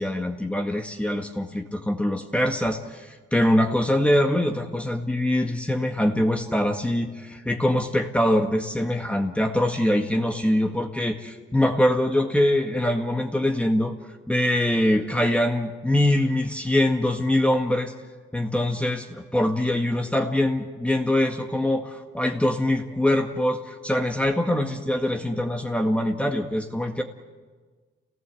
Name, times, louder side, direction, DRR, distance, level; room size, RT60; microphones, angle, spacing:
voice 1, 0.0-14.0 14.3-17.9 18.3-27.0, left 1 dB, 5° left, 2 dB, 1.8 m, -23 dB
29.0 x 18.5 x 7.9 m, 1.4 s
cardioid pair, 90°, 20 cm